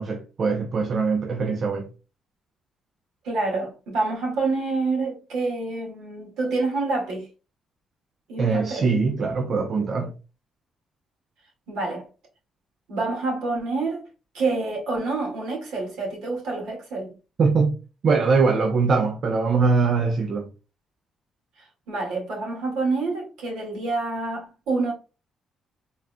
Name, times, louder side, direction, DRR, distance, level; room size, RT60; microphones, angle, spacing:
voice 1, 0.0-1.9 8.4-10.2 17.4-17.8 18.0-20.5, right 4 dB, 55° right, 0.6 m, -22 dB
voice 2, 3.2-7.3 8.3-8.9 11.7-12.1 12.9-14.1 14.3-17.1 21.9-24.9, right 3 dB, 90° right, 2.0 m, -27 dB
4.0 x 3.6 x 2.2 m
cardioid pair, 90°, 0 cm